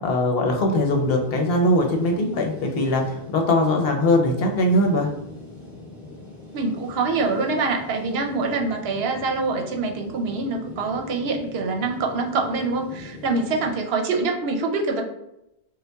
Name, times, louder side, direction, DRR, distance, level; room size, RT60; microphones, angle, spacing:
voice 1, 0.0-5.1, left 1 dB, 70° left, 2 dB, 0.8 m, -21 dB
sound 1, 0.7-13.7, left 2 dB, 30° right, 1.5 m, -42 dB
voice 2, 6.5-15.0, right 3 dB, 75° right, 2 dB, 0.8 m, -25 dB
5.3 x 2.1 x 2.2 m, 0.85 s
omnidirectional pair, 1.0 m